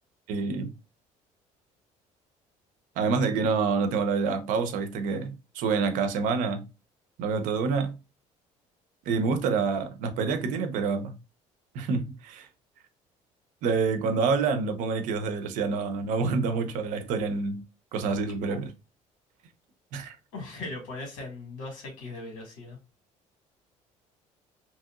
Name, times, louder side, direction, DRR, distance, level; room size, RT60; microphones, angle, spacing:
voice 1, 0.3-0.7 3.0-6.7 7.2-8.0 9.1-11.2 11.7-12.5 13.6-17.6 17.9-18.7 19.9-20.2, right 4 dB, 75° right, 0.6 m, -27 dB
voice 2, 20.3-22.8, left 2 dB, 90° left, 1.8 m, -39 dB
2.9 x 2.8 x 2.4 m
cardioid pair, 175°, 14 cm